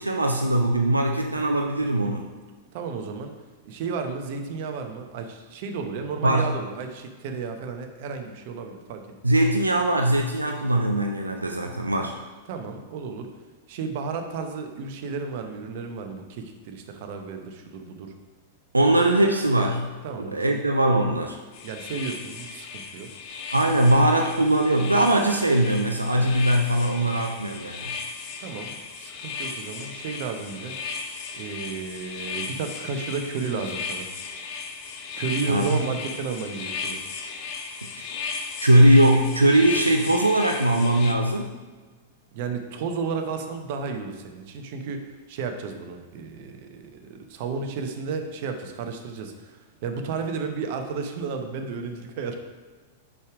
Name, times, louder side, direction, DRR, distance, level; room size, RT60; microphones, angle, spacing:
voice 1, 0.0-2.2 6.2-6.5 9.2-12.1 18.7-19.9 20.2-21.4 23.5-28.0 35.5-35.8 38.6-41.5, right 1 dB, 90° right, 3 dB, 0.5 m, -20 dB
voice 2, 2.7-3.3 3.6-9.0 12.5-13.3 13.7-18.1 20.0-20.6 21.6-23.1 28.4-30.7 31.3-34.1 35.2-37.0 42.3-52.4, right 5 dB, 50° right, 5 dB, 0.8 m, -33 dB
sound 1, 21.5-41.1, left 5 dB, 45° left, 0.8 m, -36 dB
5.4 x 4.9 x 4.8 m, 1.4 s
figure-of-eight pair, 95°, 0 cm